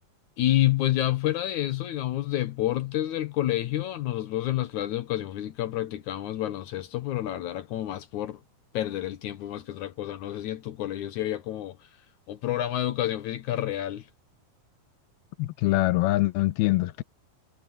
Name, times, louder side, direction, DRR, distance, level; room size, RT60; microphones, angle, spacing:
voice 1, 0.4-8.4 8.7-11.8 12.3-14.0, left 14 dB, 70° left, 2.0 m, -29 dB
voice 2, 15.4-17.0, left 18 dB, 85° left, 2.6 m, -24 dB
omnidirectional pair, 4.4 m